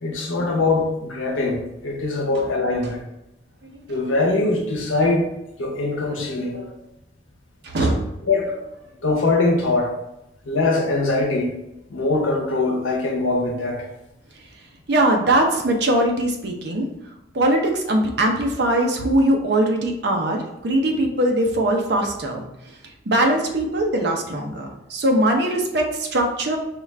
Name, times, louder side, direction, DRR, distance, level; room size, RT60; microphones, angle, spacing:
voice 1, 0.0-3.0 3.9-5.3 5.6-6.7 8.3-8.6 9.0-9.9 10.5-11.5 11.9-13.8, left 3 dB, 85° left, 1 dB, 0.8 m, -22 dB
voice 2, 3.6-4.0 7.6-8.1 14.9-16.9 17.3-22.4 23.1-26.6, right 1 dB, 60° right, 2 dB, 0.7 m, -21 dB
4.8 x 2.4 x 3.2 m, 0.87 s
head